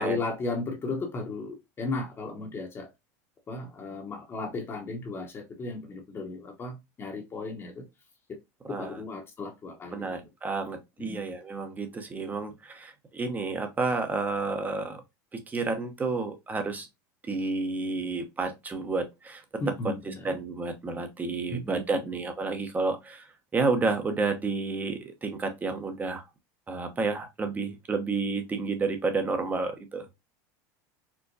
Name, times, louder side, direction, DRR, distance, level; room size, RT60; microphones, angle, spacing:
voice 1, 0.0-2.9 3.5-7.8 8.6-10.1 11.0-11.2 19.6-20.3 21.5-22.1, left 3 dB, 25° left, 0.9 m, -35 dB
voice 2, 8.6-9.0 9.9-15.0 15.5-16.9 17.3-19.9 20.2-23.3 23.5-26.2 26.7-30.0, right 3 dB, 20° right, 0.7 m, -30 dB
4.5 x 2.1 x 2.6 m
supercardioid pair, 115°, 9 cm